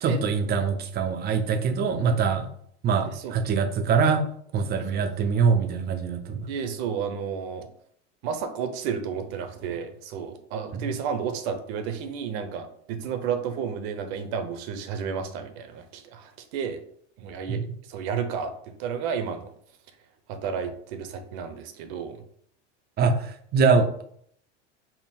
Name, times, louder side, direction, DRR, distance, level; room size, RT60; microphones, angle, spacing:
voice 1, 0.0-2.5 2.8-4.3 4.5-6.5 10.7-10.9 17.5-17.6 23.0-24.0, right 5 dB, 30° right, 7 dB, 0.4 m, -24 dB
voice 2, 3.1-3.4 6.5-7.7 8.2-16.8 17.2-18.5 18.8-19.5 20.3-22.2, right 7 dB, 60° right, 8 dB, 0.7 m, -32 dB
3.7 x 2.0 x 4.2 m, 0.65 s
supercardioid pair, 110°, 35 cm